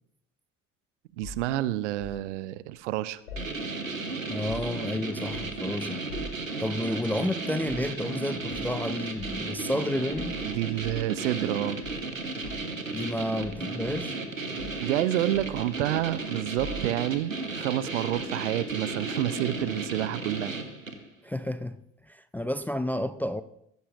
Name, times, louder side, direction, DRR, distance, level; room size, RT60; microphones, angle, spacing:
sound 1, 1.2-2.2 3.3-4.0 4.3-4.9 5.3-5.7 6.1-6.5 7.6-7.9 8.5-8.7 9.2-9.4 10.1-11.5 11.8-12.8 13.4-14.3 14.6-14.9 15.3-16.1 16.6-17.2 18.1-18.3, left 1 dB, 75° left, 3.2 m, -43 dB
voice 1, 1.2-3.2 10.4-11.8 14.8-20.6, right 14 dB, 65° right, 0.7 m, -29 dB
sound 2, 3.4-21.1, right 3 dB, 85° right, 1.1 m, -34 dB
voice 2, 4.3-6.0 6.6-10.4 12.9-14.2 21.2-23.4, left 1 dB, 5° left, 0.4 m, -31 dB
21.0 x 16.0 x 2.5 m
figure-of-eight pair, 60°, 39 cm